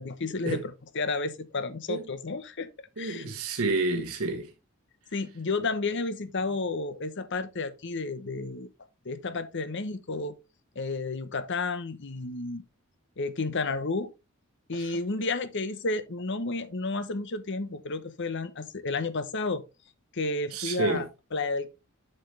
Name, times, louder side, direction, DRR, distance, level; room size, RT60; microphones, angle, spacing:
voice 1, 0.0-2.7 3.0-3.3 5.1-8.7 9.0-10.4 10.7-12.6 13.2-14.1 14.7-19.6 20.1-21.7, left 3 dB, 55° left, 0.9 m, -31 dB
voice 2, 3.0-4.5 14.8-14.9 20.5-21.1, right 3 dB, 80° right, 1.3 m, -29 dB
7.7 x 6.8 x 3.3 m
head